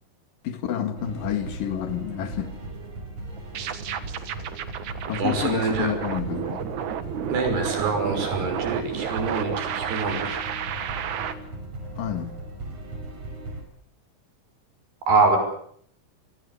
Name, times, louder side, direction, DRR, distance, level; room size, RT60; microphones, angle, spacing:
voice 1, 0.4-2.6 3.6-3.7 5.1-6.6 12.0-12.4, left 9 dB, 60° left, 3.6 m, -29 dB
sound 1, 1.0-13.6, right 2 dB, 40° right, 6.2 m, -38 dB
sound 2, 3.4-11.3, right 9 dB, 60° right, 2.5 m, -32 dB
voice 2, 5.2-5.9 7.3-10.4 15.1-15.4, right 3 dB, 85° right, 7.8 m, -24 dB
28.0 x 20.0 x 8.2 m
omnidirectional pair, 4.6 m